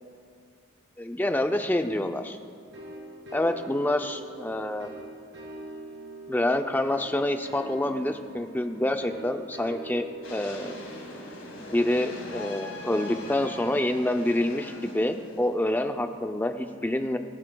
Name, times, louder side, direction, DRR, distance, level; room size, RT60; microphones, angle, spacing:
voice 1, 1.0-2.4 3.3-4.9 6.3-10.8 11.6-17.2, left 1 dB, 10° left, 7 dB, 0.4 m, -27 dB
sound 1, 2.7-13.2, right 1 dB, 60° right, 2.5 m, -44 dB
sound 2, 10.2-15.7, left 2 dB, 75° left, 3.1 m, -42 dB
22.0 x 12.0 x 2.3 m, 2.3 s
head